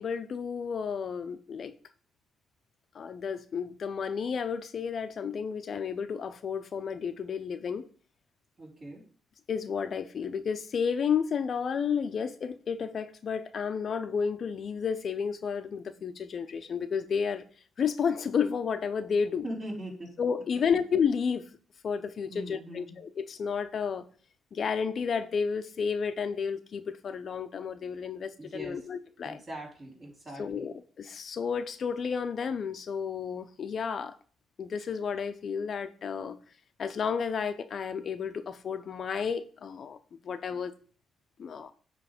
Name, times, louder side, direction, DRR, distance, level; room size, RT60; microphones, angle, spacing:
voice 1, 0.0-1.7 2.9-7.9 9.5-17.4 17.8-19.4 20.2-21.5 21.8-24.0 24.5-29.4 30.4-34.1 34.6-36.4 36.8-40.0 40.2-40.7 41.4-41.7, left 6 dB, 50° left, 0.5 m, -31 dB
voice 2, 8.6-9.0 19.4-20.1 22.3-23.0 28.4-28.9 29.2-30.8, right 1 dB, 35° right, 3.7 m, -41 dB
9.2 x 3.1 x 5.0 m
cardioid pair, 90°, 0 cm